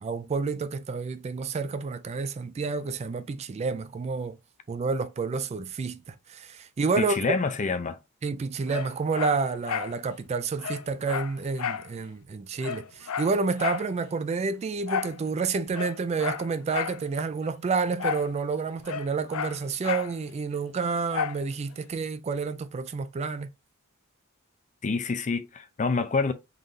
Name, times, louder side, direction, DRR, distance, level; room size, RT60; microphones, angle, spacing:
voice 1, 0.0-4.4 4.7-7.2 8.2-23.5, right 4 dB, 30° right, 0.3 m, -29 dB
voice 2, 7.0-8.0 24.8-26.3, left 4 dB, 35° left, 0.4 m, -27 dB
Dog, 8.7-10.0 10.3-10.4 10.6-11.9 12.2-12.3 12.6-13.9 14.9-15.2 15.7-17.0 18.0-18.3 18.6-20.1 21.1-21.4 21.9-22.0, left 7 dB, 90° left, 0.5 m, -32 dB
3.8 x 2.6 x 3.2 m
head